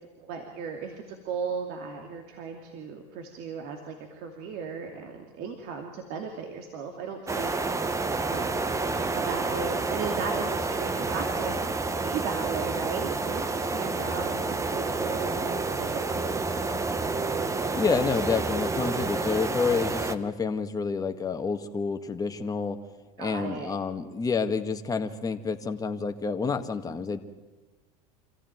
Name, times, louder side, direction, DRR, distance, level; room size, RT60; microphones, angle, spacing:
voice 1, 0.2-7.6 8.3-8.5 9.1-11.6 12.0-16.4 23.2-23.8, right 6 dB, 60° right, 4 dB, 2.8 m, -36 dB
sound 1, 7.3-20.1, right 3 dB, 15° right, 1.3 m, -29 dB
voice 2, 17.7-22.8 23.2-27.2, left 5 dB, 20° left, 6 dB, 1.8 m, -29 dB
26.5 x 15.0 x 9.4 m, 1.2 s
supercardioid pair, 110°, 18 cm